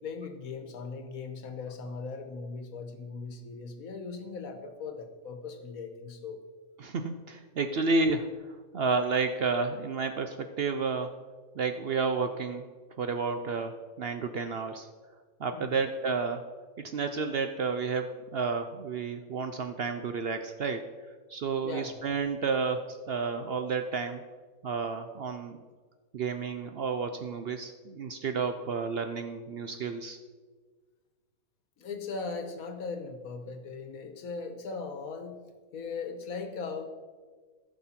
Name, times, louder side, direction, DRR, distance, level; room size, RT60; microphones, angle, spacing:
voice 1, 0.0-6.4 15.5-15.9 21.6-21.9 31.8-35.4 35.7-36.9, left 4 dB, 80° left, 7 dB, 1.5 m, -39 dB
voice 2, 6.8-11.1 11.6-12.7 13.0-14.9 15.4-16.4 16.8-20.8 21.3-24.2 24.6-25.6 26.1-30.2, right 4 dB, 60° right, 7 dB, 0.7 m, -31 dB
15.0 x 6.2 x 4.3 m, 1.4 s
omnidirectional pair, 1.5 m